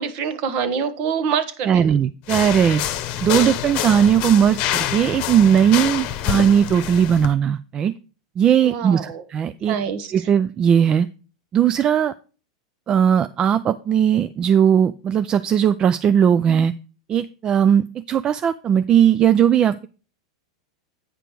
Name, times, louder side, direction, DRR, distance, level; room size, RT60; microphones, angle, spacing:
voice 1, 0.0-2.0 8.6-9.2 9.6-10.3, right 7 dB, 50° right, 11 dB, 1.1 m, -26 dB
voice 2, 1.7-2.8 3.2-7.9 8.4-9.7 10.1-11.1 11.5-12.1 12.9-16.7 17.1-19.9, right 8 dB, 30° right, 14 dB, 0.3 m, -18 dB
sound 1, 2.3-7.3, left 11 dB, 50° left, 0.9 m, -26 dB
9.0 x 5.0 x 4.6 m, 0.36 s
hypercardioid pair, 105°, 3 cm